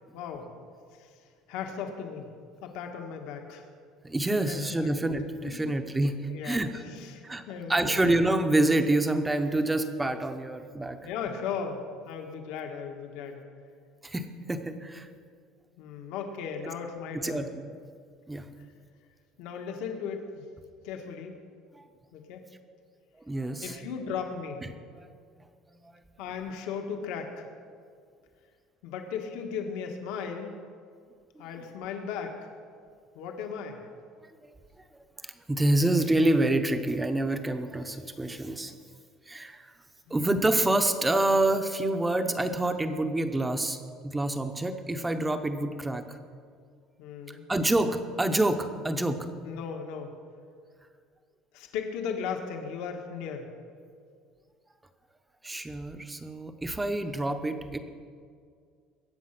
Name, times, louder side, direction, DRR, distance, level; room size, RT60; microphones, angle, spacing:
voice 1, 0.1-0.5 1.0-1.1 1.5-2.3 2.6-3.6 4.5-4.9 5.4-5.7 6.3-8.0 11.0-13.4 15.8-17.5 19.4-20.4 20.8-21.3 22.1-22.4 23.6-24.6 26.2-27.5 28.8-30.6 31.4-32.5 33.1-33.8 40.1-40.2 47.0-47.5 49.4-50.2 51.5-53.5, left 6 dB, 70° left, 3 dB, 1.7 m, -36 dB
voice 2, 4.0-6.2 6.4-6.8 7.2-7.4 7.7-11.0 14.0-15.1 17.1-17.5 18.3-18.5 21.7-21.8 23.2-23.8 25.4-25.5 25.8-26.0 35.2-38.7 39.3-39.7 40.1-46.2 47.3-49.3 55.4-57.8, right 1 dB, 10° right, 7 dB, 0.8 m, -27 dB
21.5 x 8.9 x 5.9 m, 2.2 s
cardioid pair, 170°, 0 cm